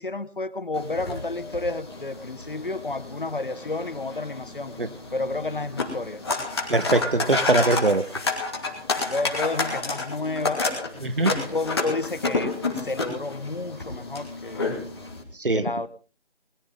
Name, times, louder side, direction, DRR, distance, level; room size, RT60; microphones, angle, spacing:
voice 1, 0.0-4.7 5.1-6.2 9.1-10.6 11.3-14.9 15.5-15.9, left 3 dB, 50° left, 16 dB, 1.1 m, -31 dB
sound 1, 0.7-15.2, left 3 dB, 25° left, 2.7 m, -30 dB
voice 2, 6.7-8.0 11.0-11.4 15.4-15.7, right 2 dB, 55° right, 13 dB, 1.3 m, -22 dB
21.0 x 13.5 x 3.7 m, 0.36 s
figure-of-eight pair, 165°, 33 cm